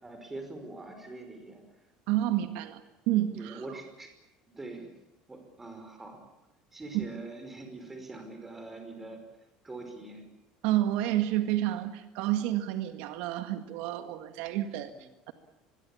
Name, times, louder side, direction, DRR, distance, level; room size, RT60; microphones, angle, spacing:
voice 1, 0.0-1.6 2.3-2.5 3.3-4.1 4.5-4.9 5.3-6.2 6.7-9.2 9.6-10.2 14.9-15.0, right 2 dB, 10° right, 5 dB, 5.3 m, -43 dB
voice 2, 2.1-2.8 3.1-3.8 6.9-7.1 10.6-15.3, right 13 dB, 70° right, 9 dB, 1.8 m, -30 dB
25.0 x 22.0 x 8.7 m, 0.95 s
cardioid pair, 170°, 2 cm